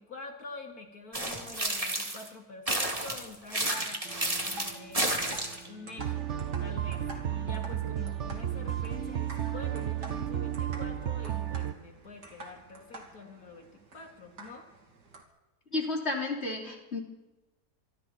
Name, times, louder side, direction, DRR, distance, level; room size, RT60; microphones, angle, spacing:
voice 1, 0.0-4.1 4.4-5.3 5.6-14.7, left 3 dB, 65° left, 3 dB, 3.2 m, -46 dB
sound 1, 1.1-2.3 2.7-5.7, right 1 dB, 20° right, 2.7 m, -31 dB
sound 2, 4.0-15.2, right 2 dB, 85° right, 3.4 m, -48 dB
sound 3, 6.0-11.7, right 11 dB, 55° right, 1.1 m, -33 dB
voice 2, 15.7-17.0, left 2 dB, 40° left, 0 dB, 3.5 m, -32 dB
26.0 x 24.5 x 4.4 m, 1.1 s
omnidirectional pair, 1.7 m